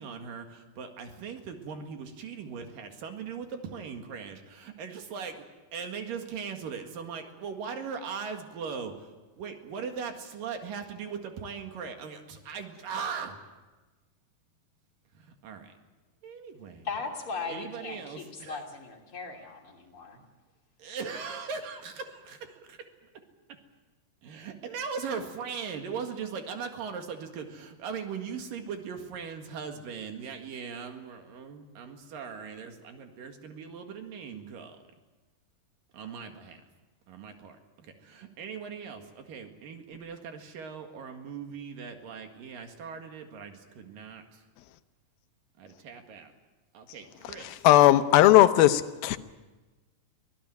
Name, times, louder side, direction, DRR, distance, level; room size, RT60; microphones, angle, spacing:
voice 1, 0.0-5.5 5.7-13.4 15.1-15.7 16.2-16.9 17.5-18.7 20.8-22.6 24.2-34.8 35.9-36.6 37.1-44.4 45.6-46.3 46.7-47.7, right 6 dB, 70° right, 3.5 m, -39 dB
voice 2, 16.9-20.2, left 4 dB, 40° left, 3.6 m, -38 dB
voice 3, 47.6-49.2, left 14 dB, 90° left, 2.7 m, -18 dB
24.5 x 17.0 x 9.3 m
omnidirectional pair, 4.2 m